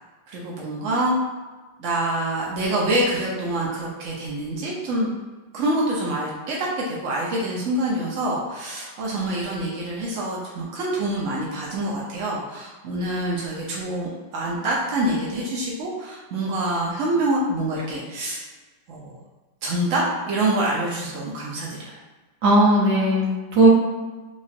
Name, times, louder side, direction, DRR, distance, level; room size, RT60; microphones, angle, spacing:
voice 1, 0.3-1.2 1.8-5.1 5.5-18.4 18.9-19.2 19.6-22.0, right 1 dB, 75° right, -4 dB, 0.6 m, -26 dB
voice 2, 22.4-23.7, right 1 dB, 50° right, -5 dB, 0.9 m, -17 dB
4.9 x 2.4 x 2.7 m, 1.3 s
omnidirectional pair, 2.0 m